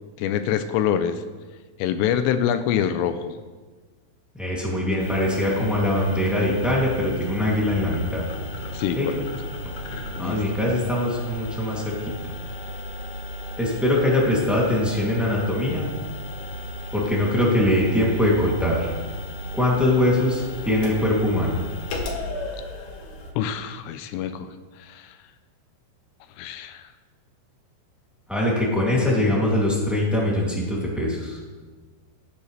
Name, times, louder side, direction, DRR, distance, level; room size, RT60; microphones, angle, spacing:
voice 1, 0.2-1.2 1.8-3.4 8.7-9.3 10.1-10.4 23.4-24.5 24.8-25.2 26.4-26.9, left 9 dB, 85° left, 10 dB, 2.6 m, -25 dB
voice 2, 4.4-8.3 8.9-9.1 10.2-11.9 13.6-15.9 16.9-18.9 19.5-21.6 28.3-31.4, left 1 dB, ahead, -5 dB, 0.9 m, -22 dB
sound 1, 5.0-23.3, left 1 dB, 65° left, 1.9 m, -34 dB
17.5 x 9.4 x 3.3 m, 1.4 s
omnidirectional pair, 5.3 m